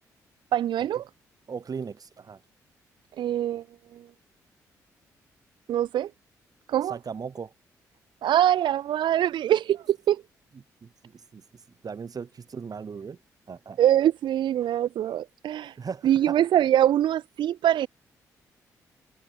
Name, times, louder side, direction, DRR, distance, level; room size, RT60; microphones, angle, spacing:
voice 1, 0.5-1.0 3.2-3.6 3.9-4.0 5.7-6.1 6.7-7.0 8.2-10.2 13.8-15.8 16.0-17.9, right 11 dB, 65° right, 1.1 m, -23 dB
voice 2, 1.5-2.4 6.9-7.5 10.8-13.2 13.5-13.8 15.8-16.4, right 6 dB, 45° right, 3.7 m, -38 dB
hypercardioid pair, 45°, 8 cm